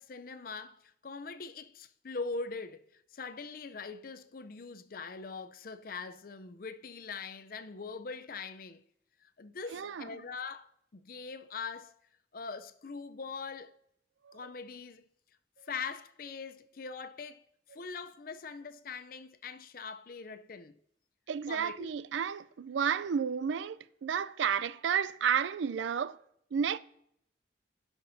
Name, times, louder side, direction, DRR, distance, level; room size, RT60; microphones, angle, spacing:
voice 1, 0.0-8.8 9.2-11.9 12.3-13.7 14.3-15.1 15.6-17.4 17.7-20.8 21.5-22.0, left 4 dB, 50° left, 0.5 m, -42 dB
voice 2, 9.7-10.2 14.2-14.4 21.3-26.2 26.5-26.8, right 7 dB, 80° right, 0.4 m, -32 dB
16.5 x 6.0 x 2.7 m
head